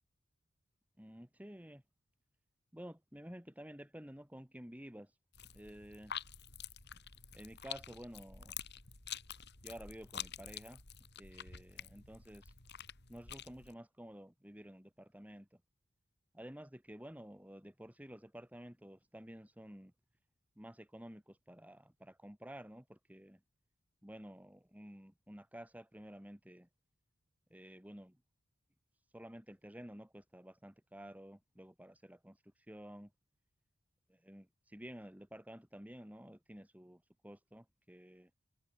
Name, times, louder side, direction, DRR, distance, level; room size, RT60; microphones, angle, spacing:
voice 1, 1.0-1.8 2.7-5.1 5.5-6.1 7.3-8.6 9.6-10.8 11.2-12.5 13.1-15.5 16.3-19.9 20.6-23.4 24.0-26.7 27.5-28.2 29.1-33.1 34.1-38.3, equal, 10° right, 3.9 m, -52 dB
sound 1, 5.3-13.7, left 8 dB, 55° left, 6.5 m, -48 dB
head